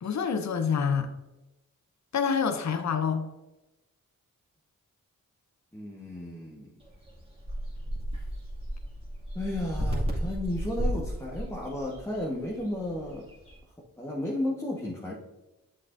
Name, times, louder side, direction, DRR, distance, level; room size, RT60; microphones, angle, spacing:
voice 1, 0.0-1.1 2.1-3.2, left 6 dB, 55° left, 8 dB, 0.7 m, -27 dB
voice 2, 5.7-6.7 9.3-13.2 14.0-15.1, left 1 dB, 10° left, -3 dB, 1.4 m, -33 dB
sound 1, 6.8-13.6, equal, 15° right, 2.3 m, -34 dB
7.4 x 6.5 x 2.6 m, 1.0 s
cardioid pair, 45°, 34 cm